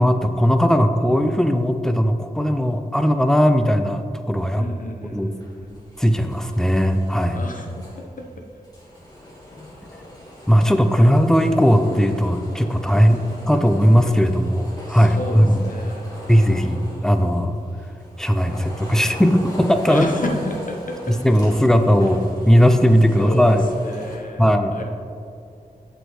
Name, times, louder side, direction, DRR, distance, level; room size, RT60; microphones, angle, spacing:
voice 1, 0.0-4.7 5.1-5.3 6.0-7.4 10.5-15.6 16.3-17.6 18.2-20.1 21.1-23.7 24.4-24.8, equal, 5° left, 7 dB, 0.5 m, -18 dB
voice 2, 4.6-5.8 7.3-7.8 9.5-9.7 12.9-13.5 14.9-16.1 19.9-21.1 23.2-24.8, left 2 dB, 55° left, 1 dB, 0.9 m, -31 dB
sound 1, 5.4-24.2, equal, 25° left, 1.7 m, -40 dB
7.7 x 6.3 x 3.2 m, 2.4 s
wide cardioid pair, 70°, 16 cm